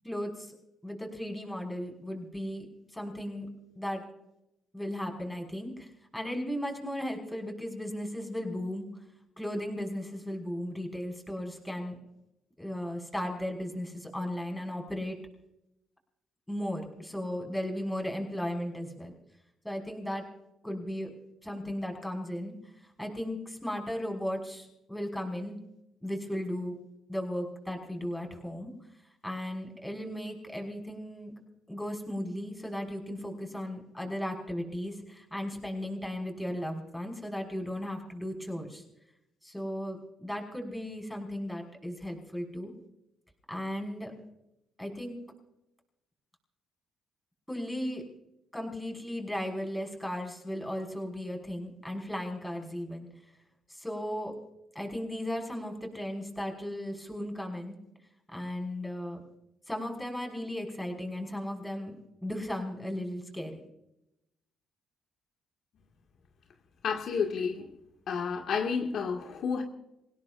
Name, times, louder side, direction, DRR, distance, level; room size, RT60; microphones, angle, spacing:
voice 1, 0.0-0.6 0.8-2.7 2.9-3.5 3.8-4.0 4.7-8.9 9.4-12.0 12.6-15.2 16.5-19.1 19.6-20.3 20.6-21.1 21.4-22.5 23.0-25.6 26.0-26.8 27.1-28.7 29.2-31.3 31.7-38.8 39.4-42.7 43.5-44.1 44.8-45.2 47.5-48.0 48.5-53.1 53.7-54.3 54.7-57.8 58.3-59.2 59.7-63.6, left 1 dB, 5° left, 2 dB, 5.8 m, -36 dB
voice 2, 66.8-67.7 68.1-69.6, left 6 dB, 65° left, 2 dB, 2.1 m, -30 dB
28.5 x 17.0 x 2.6 m, 0.86 s
cardioid pair, 90°, 0 cm